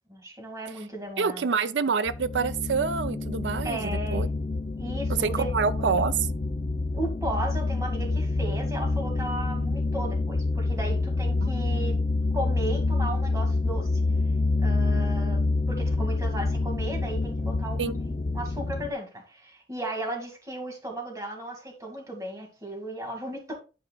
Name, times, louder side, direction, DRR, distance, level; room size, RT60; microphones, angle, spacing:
voice 1, 0.1-1.5 3.6-4.3 4.8-5.9 6.9-12.0 12.3-14.0 14.6-23.5, right 1 dB, 20° right, 2.1 m, -35 dB
voice 2, 1.2-4.3 5.2-6.3 11.4-11.5 17.8-17.9, right 5 dB, 85° right, 0.5 m, -27 dB
sound 1, 2.1-18.9, left 3 dB, 40° left, 0.5 m, -27 dB
11.0 x 4.8 x 2.3 m
head